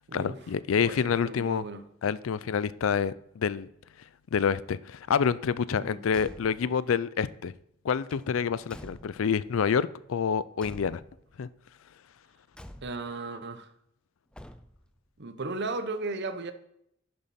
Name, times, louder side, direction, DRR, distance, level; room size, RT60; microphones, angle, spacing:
voice 1, 0.1-1.6 2.0-3.7 4.3-7.5 7.8-11.0 11.4-11.5, left 6 dB, 90° left, 0.4 m, -27 dB
voice 2, 0.7-1.8 5.8-6.0 12.8-13.7 15.2-16.5, right 3 dB, 60° right, 0.9 m, -35 dB
Car / Truck / Slam, 6.1-6.8 8.1-9.5 10.6-11.4 12.5-13.2 14.3-15.0, equal, 5° left, 0.5 m, -48 dB
11.0 x 6.9 x 4.3 m
head